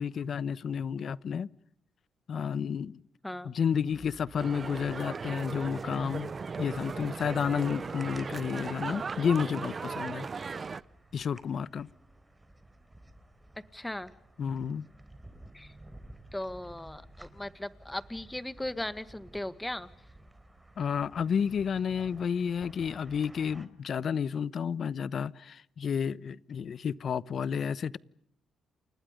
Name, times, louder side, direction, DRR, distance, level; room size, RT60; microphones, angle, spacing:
voice 1, 0.0-1.5 2.3-3.0 3.4-6.3 6.6-10.3 11.1-11.9 14.4-14.8 20.8-28.0, left 7 dB, 55° left, 1.0 m, -31 dB
sound 1, 3.9-23.7, right 1 dB, 10° right, 3.8 m, -54 dB
sound 2, 4.4-10.8, right 5 dB, 35° right, 1.0 m, -37 dB
voice 2, 13.7-14.1 15.5-15.7 16.3-19.9, left 1 dB, 10° left, 1.9 m, -37 dB
30.0 x 29.0 x 5.3 m
cardioid pair, 90°, 0 cm